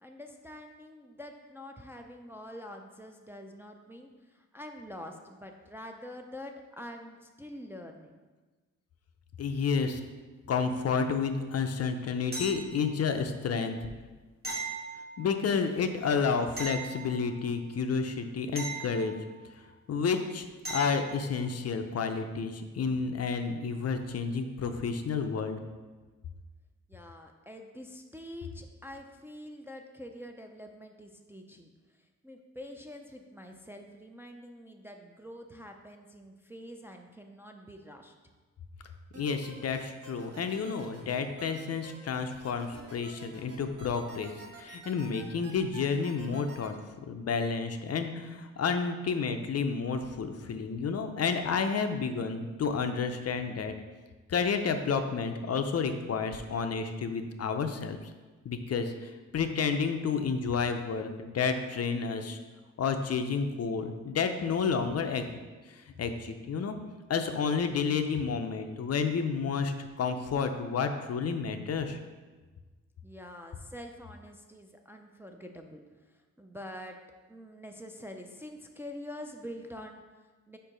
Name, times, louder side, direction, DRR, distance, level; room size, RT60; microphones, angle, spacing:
voice 1, 0.0-8.2 26.9-38.1 73.0-80.6, left 1 dB, 10° right, 3 dB, 0.3 m, -46 dB
voice 2, 9.4-10.0 10.5-13.8 15.2-19.1 19.9-25.6 39.2-44.3 44.6-46.8 47.0-53.7 54.3-58.0 58.4-62.4 62.8-65.4 65.7-66.8 67.1-72.0, left 5 dB, 55° left, 7 dB, 0.5 m, -30 dB
sound 1, 12.3-13.1 14.4-15.5 16.6-17.6 18.5-19.6 20.6-21.3 24.0-24.1, right 3 dB, 30° right, 1.3 m, -39 dB
sound 2, 39.1-46.7, right 3 dB, 55° right, 1.2 m, -48 dB
5.3 x 4.5 x 5.0 m, 1.3 s
wide cardioid pair, 135°, 30 cm